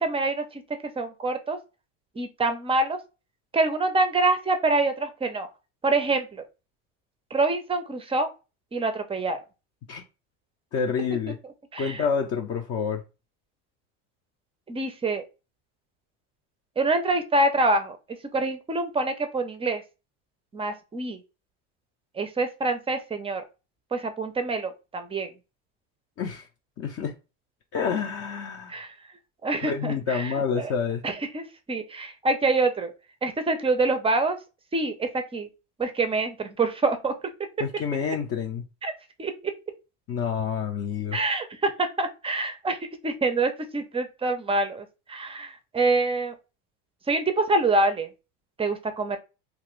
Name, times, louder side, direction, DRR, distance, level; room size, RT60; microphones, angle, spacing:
voice 1, 0.0-0.6 1.0-1.6 2.2-3.0 3.5-5.5 5.8-6.4 7.3-8.3 8.7-9.4 11.7-12.1 14.7-15.2 16.8-18.0 18.3-19.8 20.5-21.2 22.2-23.4 23.9-25.3 28.7-28.9 29.4-30.7 31.0-32.9 33.2-34.4 34.7-35.5 35.8-37.1 38.8-38.9 39.2-39.5 41.1-42.8 43.0-46.3 47.1-48.1 48.6-49.2, right 2 dB, 15° right, 0.4 m, -26 dB
voice 2, 10.7-11.4 11.8-13.0 26.2-26.5 26.8-27.1 27.7-28.8 29.6-31.0 37.6-38.6 40.1-41.2, left 6 dB, 40° left, 0.5 m, -28 dB
2.9 x 2.5 x 3.1 m
supercardioid pair, 115°, 35 cm